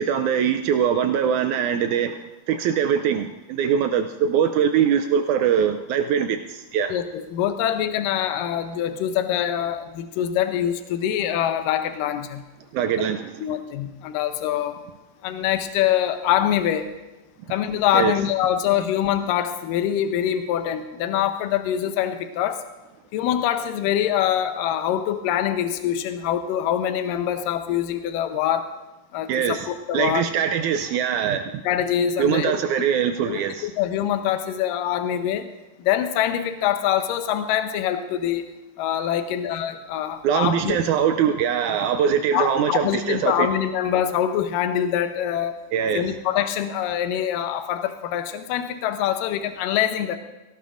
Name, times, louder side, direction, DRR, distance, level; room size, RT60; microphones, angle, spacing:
voice 1, 0.0-2.2 2.5-6.9 12.7-13.4 17.9-18.1 29.3-31.6 32.2-33.7 40.2-43.5 45.7-46.1, right 8 dB, 85° right, 7 dB, 1.7 m, -22 dB
voice 2, 6.9-12.4 13.4-14.8 15.2-16.9 17.5-22.6 23.1-28.7 29.1-30.2 31.6-32.5 33.3-35.5 35.8-38.5 38.8-40.8 42.3-45.6 45.9-50.2, left 10 dB, 80° left, 8 dB, 2.4 m, -24 dB
17.5 x 17.5 x 2.5 m, 1.1 s
omnidirectional pair, 4.0 m